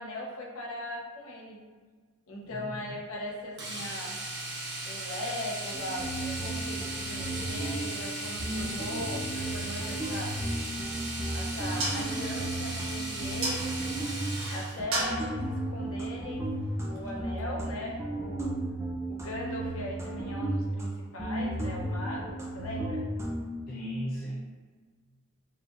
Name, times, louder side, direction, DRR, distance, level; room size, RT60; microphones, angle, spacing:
voice 1, 0.0-1.6 2.3-4.1 4.8-10.3 11.3-13.8 14.5-16.5 16.9-18.5 19.1-23.0, left 1 dB, 85° left, -2 dB, 0.9 m, -39 dB
voice 2, 2.4-2.9 23.7-24.3, equal, 45° left, -7 dB, 0.6 m, -36 dB
Domestic sounds home sounds, 3.6-14.8 17.0-17.1 17.4-17.5, right 1 dB, 60° right, 1.1 m, -37 dB
sound 1, 5.7-8.1 8.4-14.5 14.8-20.9 21.2-23.4, right 1 dB, 15° right, 0.5 m, -34 dB
sound 2, 10.8-17.0, right 2 dB, 75° right, 1.2 m, -38 dB
4.7 x 3.1 x 2.4 m, 1.5 s
head